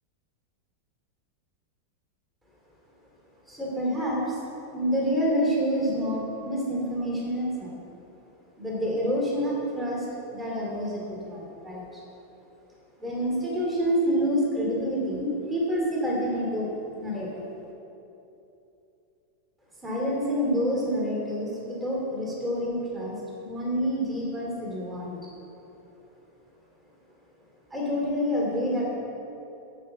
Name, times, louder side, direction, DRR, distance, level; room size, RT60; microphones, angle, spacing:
voice 1, 3.5-4.4 4.7-7.8 8.6-12.0 13.0-16.7 17.0-17.4 19.8-25.2 27.7-28.9, equal, ahead, -5 dB, 2.3 m, -28 dB
12.0 x 5.6 x 7.7 m, 2.9 s
omnidirectional pair, 2.0 m